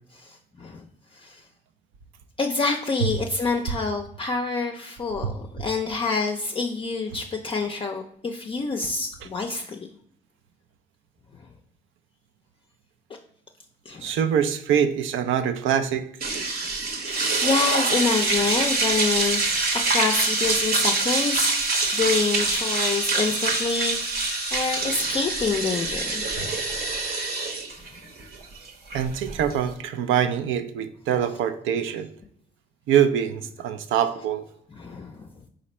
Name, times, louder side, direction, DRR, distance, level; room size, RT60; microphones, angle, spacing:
voice 1, 2.4-9.8 13.9-14.0 17.0-21.5 21.9-24.0 24.5-26.3 34.8-35.3, left 4 dB, 25° left, 2 dB, 0.4 m, -27 dB
voice 2, 14.0-16.1 28.9-32.1 32.9-34.5, right 8 dB, 80° right, 11 dB, 0.5 m, -24 dB
sound 1, 16.2-29.7, right 3 dB, 50° right, 0.9 m, -25 dB
4.1 x 2.6 x 4.2 m, 0.72 s
cardioid pair, 90°, 20 cm